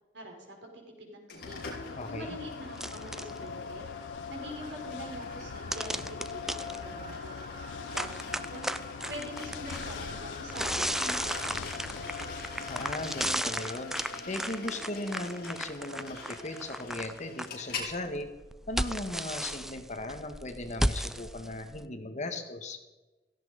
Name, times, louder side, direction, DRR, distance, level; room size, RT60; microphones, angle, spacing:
voice 1, 0.1-1.6 2.1-3.9 4.3-7.4 7.9-8.7 9.1-12.2, equal, 70° right, 2 dB, 5.4 m, -44 dB
sound 1, 1.3-17.9, left 3 dB, 55° left, 4.9 m, -43 dB
sound 2, 1.4-13.4, left 6 dB, 75° left, 0.4 m, -43 dB
voice 2, 2.0-2.4 12.7-14.0 14.3-18.3 18.7-22.8, left 2 dB, 40° left, 6 dB, 1.9 m, -37 dB
sound 3, 2.7-3.4 5.7-6.8 7.9-9.9 10.5-17.5 17.8-21.8, equal, ahead, 0.6 m, -34 dB
17.0 x 15.5 x 5.3 m, 1.1 s
head